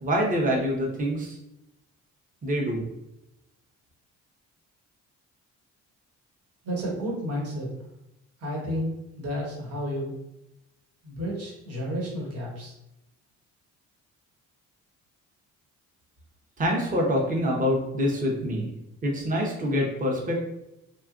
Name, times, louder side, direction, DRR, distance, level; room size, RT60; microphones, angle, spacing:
voice 1, 0.0-1.4 2.4-2.9 16.6-18.7 19.0-20.4, equal, 25° right, -1 dB, 0.7 m, -25 dB
voice 2, 6.6-7.7 8.4-10.1 11.0-12.7, equal, 55° right, -3 dB, 1.2 m, -31 dB
2.9 x 2.3 x 2.4 m, 0.87 s
cardioid pair, 90°, 30 cm